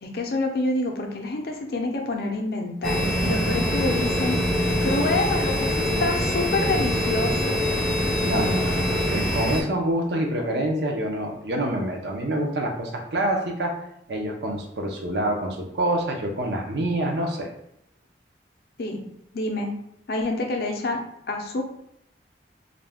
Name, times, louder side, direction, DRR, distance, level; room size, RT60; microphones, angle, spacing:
voice 1, 0.0-4.4 4.8-7.6 18.8-19.0 19.3-19.7 20.1-21.0 21.3-21.6, left 2 dB, 55° left, 2 dB, 0.5 m, -27 dB
sound 1, 2.8-9.6, equal, ahead, 0.5 m, -24 dB
voice 2, 8.2-13.8 14.1-17.5, right 1 dB, 65° right, 1 dB, 0.5 m, -26 dB
2.5 x 2.2 x 3.3 m, 0.77 s
head